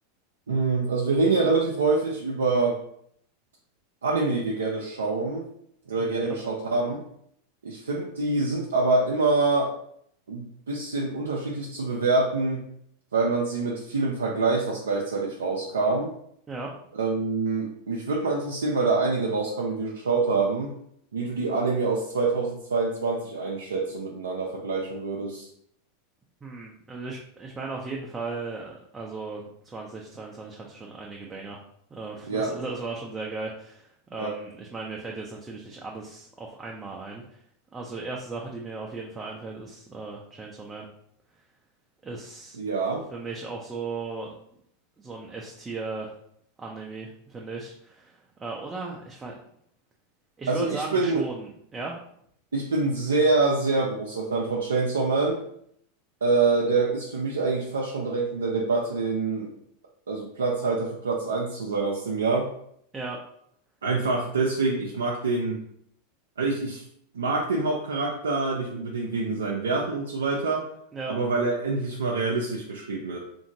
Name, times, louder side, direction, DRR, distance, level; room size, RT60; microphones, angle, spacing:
voice 1, 0.5-2.8 4.0-5.5 5.9-7.0 7.6-9.7 10.3-12.6 13.1-16.1 16.9-20.7 21.1-25.5 32.3-32.5 34.2-34.3 42.6-43.0 50.5-51.2 52.5-55.4 56.2-59.5 60.1-62.5 63.8-65.6 66.4-66.8 67.1-70.7 71.1-73.2, right 3 dB, 85° right, -3 dB, 0.4 m, -26 dB
voice 2, 26.4-31.6 31.9-37.4 37.7-40.9 42.0-42.6 43.1-44.3 45.0-46.1 46.6-49.3 50.4-52.0 62.9-63.2 70.9-71.2, right 3 dB, 20° right, -1 dB, 0.4 m, -36 dB
2.8 x 2.6 x 2.6 m, 0.70 s
hypercardioid pair, 95°, 0 cm